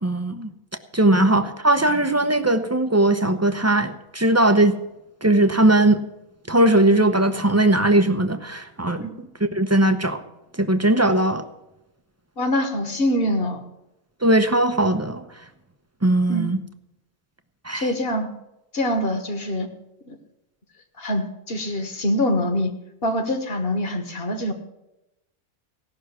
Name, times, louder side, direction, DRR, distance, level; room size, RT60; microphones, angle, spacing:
voice 1, 0.0-0.5 0.9-4.7 5.2-6.0 6.5-10.2 10.6-11.4 14.2-15.2 16.0-16.6 17.6-17.9, right 1 dB, 20° right, 8 dB, 0.4 m, -19 dB
voice 2, 12.4-13.6 16.3-16.5 17.7-18.3 18.7-19.7 20.1-20.2 21.0-22.7 23.0-24.5, left 1 dB, 45° left, 7 dB, 1.5 m, -24 dB
16.5 x 6.2 x 8.0 m, 0.91 s
omnidirectional pair, 1.5 m